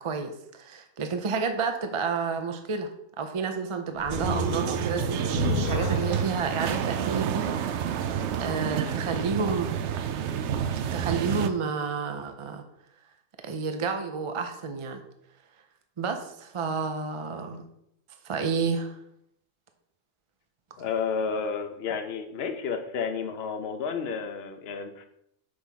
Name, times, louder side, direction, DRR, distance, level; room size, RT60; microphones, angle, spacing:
voice 1, 0.0-2.9 3.2-8.1 8.4-9.7 10.9-12.6 13.4-15.0 16.0-17.6 18.2-18.9, right 5 dB, 40° right, 6 dB, 0.4 m, -30 dB
sound 1, 4.0-9.3, left 7 dB, 75° left, 1.0 m, -36 dB
sound 2, 4.1-11.5, right 8 dB, 65° right, 0.8 m, -29 dB
voice 2, 20.8-25.1, left 6 dB, 55° left, 6 dB, 0.9 m, -31 dB
6.3 x 3.5 x 5.7 m, 0.76 s
omnidirectional pair, 1.4 m